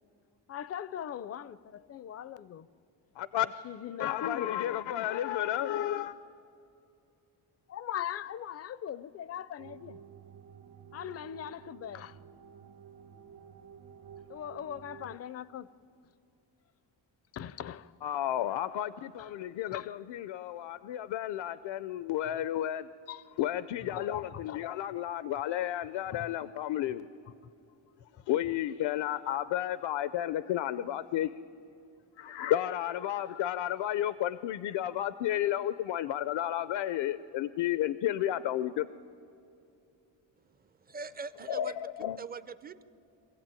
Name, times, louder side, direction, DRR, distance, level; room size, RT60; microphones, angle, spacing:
voice 1, 0.5-2.7 3.6-5.1 7.7-10.0 10.9-12.2 14.3-15.7 17.3-17.9 19.2-19.3 19.7-19.9 23.1-23.3 23.9-24.6, left 10 dB, 35° left, 0.5 m, -40 dB
voice 2, 3.2-3.5 4.0-6.2 18.0-22.9 23.4-27.1 28.3-31.3 32.2-38.9 41.5-42.2, left 12 dB, 75° left, 0.6 m, -32 dB
sound 1, 9.6-15.2, right 7 dB, 55° right, 1.4 m, -51 dB
voice 3, 40.4-41.7 42.2-42.8, right 4 dB, 20° right, 0.5 m, -43 dB
25.0 x 16.0 x 9.0 m
cardioid pair, 170°, 44 cm